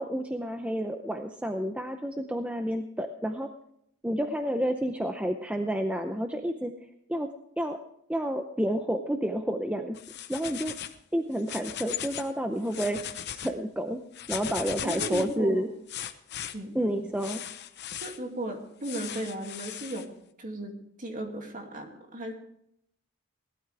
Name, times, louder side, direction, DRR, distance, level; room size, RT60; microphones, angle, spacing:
voice 1, 0.0-3.5 4.0-6.7 7.1-7.3 7.6-7.8 8.1-9.9 10.3-10.7 11.1-14.0 14.3-15.7 16.7-17.4, equal, 5° right, 5 dB, 0.6 m, -30 dB
sound 1, 9.9-11.0 11.3-12.3 12.6-13.5 14.1-15.4 15.9-16.5 17.2-18.2 18.8-20.0, left 10 dB, 50° left, 0.8 m, -37 dB
voice 2, 14.8-15.6 16.5-16.8 18.0-20.1 20.4-20.7 21.0-22.3, right 1 dB, 35° right, 3 dB, 2.4 m, -35 dB
18.5 x 12.5 x 3.4 m, 0.73 s
head